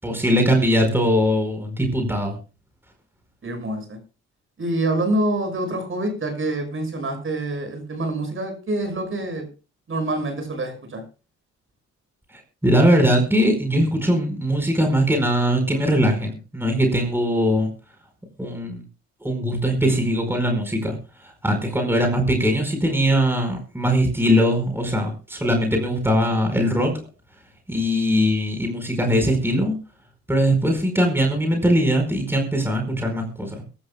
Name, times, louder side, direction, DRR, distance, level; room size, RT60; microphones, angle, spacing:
voice 1, 0.0-2.4 12.3-17.7 18.4-18.8 19.2-20.9 21.2-27.0 27.7-29.7 30.3-33.6, equal, 5° right, 4 dB, 4.7 m, -21 dB
voice 2, 3.4-4.0 4.6-9.5 9.9-11.0, right 1 dB, 45° right, 6 dB, 6.5 m, -26 dB
23.0 x 13.0 x 2.2 m, 0.34 s
cardioid pair, 90°, 30 cm